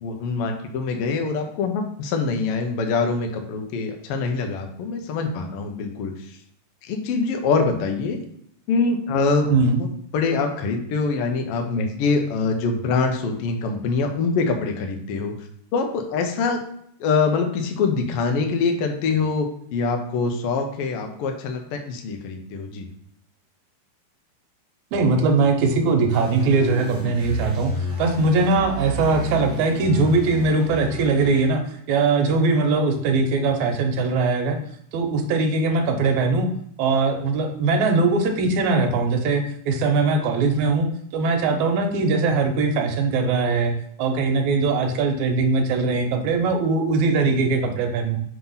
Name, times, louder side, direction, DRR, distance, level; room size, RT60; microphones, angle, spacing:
voice 1, 0.0-6.1 6.8-8.2 8.7-9.5 9.8-9.9 10.1-15.3 15.7-16.6 17.0-19.5 19.7-22.9, left 4 dB, 75° left, 4 dB, 1.3 m, -24 dB
voice 2, 9.5-9.8 24.9-34.6 34.9-36.5 36.8-48.2, right 3 dB, 75° right, 4 dB, 2.0 m, -21 dB
sound 1, 26.1-31.5, right 1 dB, ahead, 1.6 m, -30 dB
5.8 x 2.9 x 5.5 m, 0.69 s
omnidirectional pair, 3.6 m